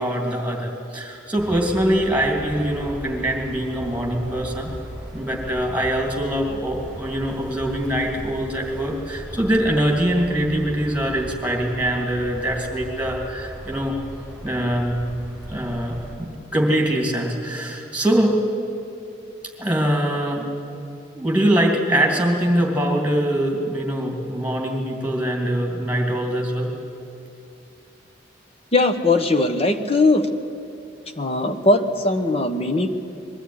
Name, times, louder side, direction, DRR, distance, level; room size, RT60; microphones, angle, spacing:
voice 1, 0.0-4.7 5.1-14.0 14.4-14.9 15.5-18.4 18.7-18.8 19.6-20.5 21.1-26.7, right 1 dB, 10° right, 0 dB, 2.8 m, -23 dB
sound 1, 1.4-16.2, equal, 10° left, 5.3 m, -38 dB
voice 2, 28.7-30.3 31.2-32.9, left 2 dB, 35° left, 7 dB, 1.1 m, -19 dB
21.5 x 12.5 x 9.8 m, 2.6 s
head